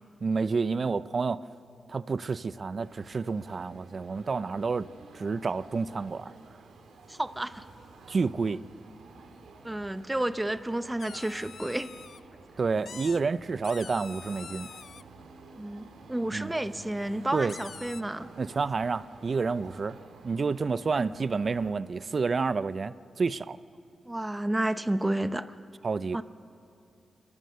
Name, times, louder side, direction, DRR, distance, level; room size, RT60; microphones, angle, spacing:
voice 1, 0.2-1.4 1.9-4.9 5.1-6.3 8.1-8.6 12.6-14.7 16.3-16.5 17.3-17.6 18.4-20.0 20.2-23.6 25.8-26.2, right 4 dB, 55° right, 16 dB, 0.6 m, -29 dB
sound 1, 2.7-21.7, right 3 dB, 85° right, 2.3 m, -51 dB
voice 2, 7.1-7.7 9.6-11.9 15.6-18.3 20.9-21.0 24.1-25.5 26.1-26.2, right 1 dB, 15° right, 12 dB, 0.9 m, -31 dB
sound 2, 11.0-12.2 12.8-13.2 13.6-15.0 17.1-17.2 17.5-18.0, left 6 dB, 70° left, 0.4 m, -45 dB
30.0 x 13.5 x 6.8 m, 2.6 s
cardioid pair, 50°, 0 cm